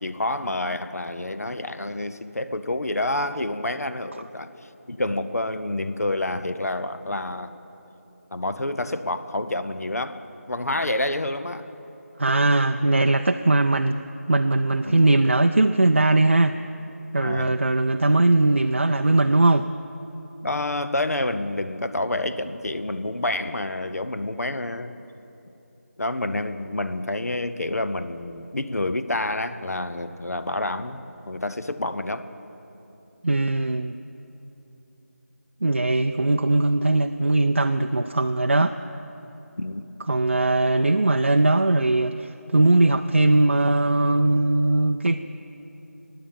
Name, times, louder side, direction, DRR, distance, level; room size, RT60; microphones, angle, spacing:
voice 1, 0.0-4.5 4.9-7.5 8.3-10.2 10.5-11.7 14.8-14.9 17.2-17.5 20.4-25.0 26.0-32.3 39.6-39.9, left 2 dB, 75° left, 11 dB, 0.9 m, -28 dB
voice 2, 12.2-14.0 14.3-16.5 17.1-19.7 33.2-34.0 35.6-38.7 40.1-45.2, right 2 dB, 50° right, 6 dB, 0.4 m, -20 dB
17.0 x 8.9 x 9.1 m, 2.9 s
figure-of-eight pair, 180°, 8 cm